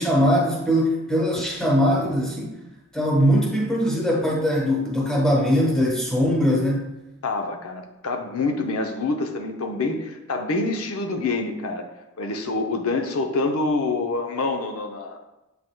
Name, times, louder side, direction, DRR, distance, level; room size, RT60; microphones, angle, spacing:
voice 1, 0.0-2.5 2.9-6.9, equal, 5° left, -3 dB, 1.1 m, -21 dB
voice 2, 7.2-11.9 12.2-15.2, left 3 dB, 85° left, 4 dB, 0.6 m, -26 dB
7.6 x 5.7 x 2.2 m, 0.97 s
head